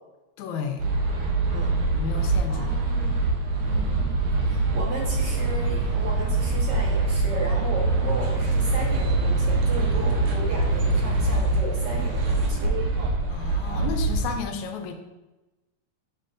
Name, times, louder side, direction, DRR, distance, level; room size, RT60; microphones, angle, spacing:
voice 1, 0.4-1.0 1.9-2.7 13.3-14.9, left 6 dB, 85° left, 5 dB, 2.0 m, -32 dB
sound 1, 0.8-14.4, right 3 dB, 85° right, 1.1 m, -24 dB
voice 2, 2.5-3.2 3.6-4.2 4.4-12.8, right 2 dB, 50° right, -3 dB, 1.4 m, -35 dB
7.0 x 6.6 x 2.5 m, 1.1 s
omnidirectional pair, 3.3 m